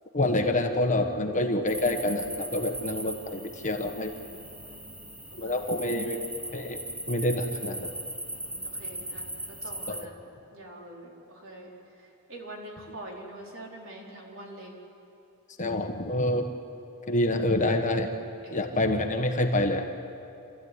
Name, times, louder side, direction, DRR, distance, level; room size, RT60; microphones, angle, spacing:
voice 1, 0.1-4.1 5.4-6.2 6.5-6.8 7.1-7.9 9.9-10.0 15.6-16.5 17.1-18.1 18.5-19.8, left 1 dB, 35° left, 4 dB, 1.4 m, -27 dB
sound 1, 1.7-10.1, right 1 dB, 5° right, 0.8 m, -39 dB
voice 2, 4.1-5.8 8.3-14.7 18.4-18.8, right 1 dB, 60° right, -2 dB, 4.4 m, -46 dB
28.5 x 14.0 x 9.7 m, 2.8 s
head